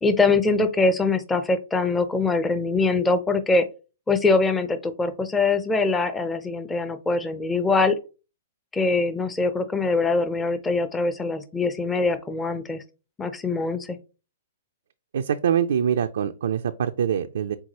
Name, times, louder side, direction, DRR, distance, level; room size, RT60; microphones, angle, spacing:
voice 1, 0.0-3.7 4.1-8.0 8.7-12.8 13.2-14.0, left 3 dB, 10° left, 10 dB, 0.5 m, -23 dB
voice 2, 15.1-17.6, right 8 dB, 70° right, 7 dB, 0.3 m, -24 dB
4.6 x 3.8 x 2.8 m, 0.32 s
hypercardioid pair, 125°, 0 cm